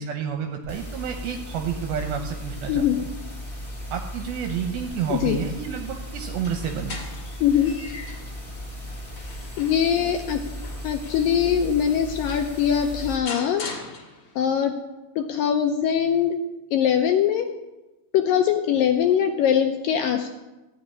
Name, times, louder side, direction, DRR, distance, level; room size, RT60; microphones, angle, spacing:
voice 1, 0.0-3.1 3.9-7.0, right 7 dB, 75° right, 5 dB, 2.6 m, -30 dB
sound 1, 0.6-13.2, equal, 15° left, 2.2 m, -36 dB
sound 2, 6.3-8.4 8.9-11.4 12.0-12.1 12.3-14.5, left 4 dB, 45° left, 2.9 m, -40 dB
voice 2, 7.4-7.7 9.6-10.4 10.8-13.7 14.4-14.8 15.2-16.4 16.7-17.5 18.1-20.3, left 9 dB, 75° left, 5 dB, 2.1 m, -22 dB
14.5 x 6.0 x 9.6 m, 1.1 s
omnidirectional pair, 4.6 m